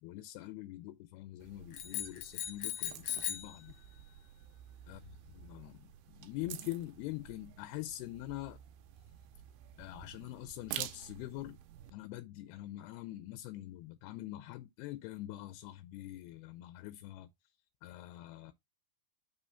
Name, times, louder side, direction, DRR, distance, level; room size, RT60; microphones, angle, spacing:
voice 1, 0.0-3.8 4.9-8.6 9.8-11.6 11.9-17.3 17.8-18.5, left 16 dB, 85° left, 2.5 m, -44 dB
sound 1, 1.4-11.9, right 12 dB, 85° right, 2.5 m, -49 dB
sound 2, 1.7-3.6, left 11 dB, 65° left, 1.7 m, -38 dB
6.2 x 3.1 x 5.5 m
omnidirectional pair, 4.5 m